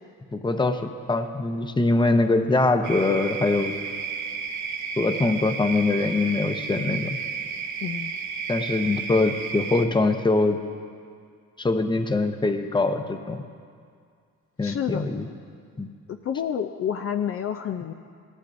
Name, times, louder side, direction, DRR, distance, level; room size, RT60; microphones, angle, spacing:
voice 1, 0.3-0.8 1.1-3.7 5.0-7.2 8.5-10.6 11.6-13.4 14.6-15.3 15.8-15.9, left 3 dB, 15° left, 7 dB, 0.8 m, -23 dB
sound 1, 2.8-9.9, right 6 dB, 70° right, 1.0 m, -32 dB
voice 2, 7.8-8.1 14.6-15.0 16.1-17.9, left 8 dB, 50° left, 6 dB, 0.5 m, -29 dB
17.5 x 13.5 x 2.6 m, 2.2 s
cardioid pair, 90°, 30 cm